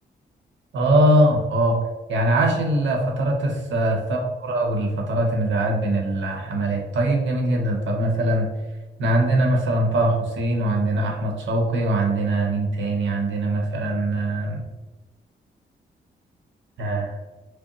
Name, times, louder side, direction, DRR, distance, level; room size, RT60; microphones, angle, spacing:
voice 1, 0.7-1.8 2.1-8.5 9.0-14.6 16.8-17.1, right 1 dB, 80° right, 1 dB, 0.9 m, -22 dB
5.1 x 2.1 x 2.9 m, 1.2 s
cardioid pair, 65°, 19 cm